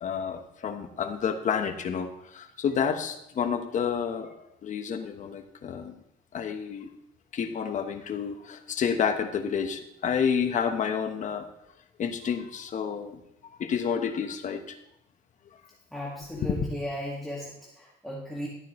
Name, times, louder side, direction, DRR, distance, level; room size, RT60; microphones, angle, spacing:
voice 1, 0.0-6.0 6.3-6.9 7.3-11.4 12.0-13.2 13.6-14.8 16.3-16.7, left 7 dB, 45° left, 6 dB, 1.2 m, -30 dB
voice 2, 15.9-18.5, equal, ahead, -6 dB, 2.1 m, -36 dB
13.5 x 9.2 x 3.2 m, 0.81 s
cardioid pair, 110°, 17 cm